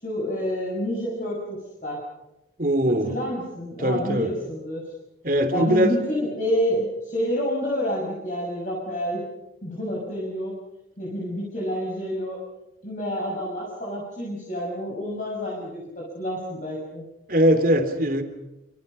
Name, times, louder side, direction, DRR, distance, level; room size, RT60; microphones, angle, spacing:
voice 1, 0.0-2.0 3.0-4.9 5.5-9.2 9.6-10.5 11.0-12.4 12.8-17.0, equal, 45° left, -3 dB, 6.9 m, -28 dB
voice 2, 2.6-3.2 3.8-4.3 5.2-6.0 17.3-18.2, equal, 50° right, 7 dB, 3.4 m, -21 dB
28.0 x 27.0 x 5.8 m, 0.97 s
head